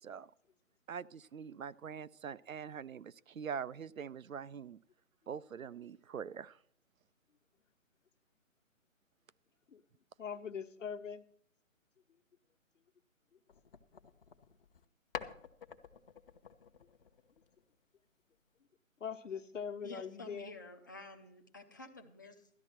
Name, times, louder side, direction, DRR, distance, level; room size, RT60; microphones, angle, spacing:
voice 1, 0.9-4.8 5.3-6.6, right 7 dB, 75° right, 16 dB, 0.7 m, -44 dB
voice 2, 10.2-11.2 19.0-20.5, left 7 dB, 65° left, 6 dB, 1.2 m, -42 dB
sound 1, 13.5-14.9 15.1-17.7, left 7 dB, 40° left, 1.0 m, -49 dB
voice 3, 19.8-22.5, left 2 dB, 15° left, 2 dB, 0.5 m, -50 dB
13.0 x 10.5 x 4.4 m, 0.65 s
figure-of-eight pair, 150°, 41 cm